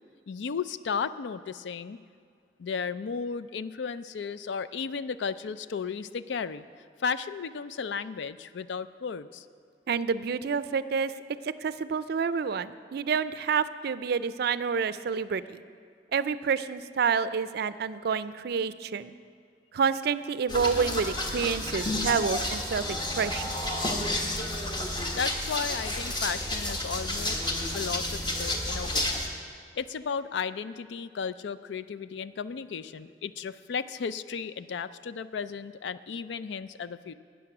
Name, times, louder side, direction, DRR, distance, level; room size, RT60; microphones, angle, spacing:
voice 1, 0.3-2.0 2.6-6.6 7.0-9.5 25.1-27.4 27.7-29.1 29.8-37.1, left 6 dB, 80° left, 14 dB, 0.4 m, -34 dB
voice 2, 9.9-11.1 11.4-15.6 16.1-19.1 19.7-23.5, right 6 dB, 60° right, 14 dB, 0.4 m, -28 dB
sound 1, 20.5-29.3, left 1 dB, 25° left, 1.2 m, -31 dB
12.5 x 9.1 x 5.9 m, 2.2 s
head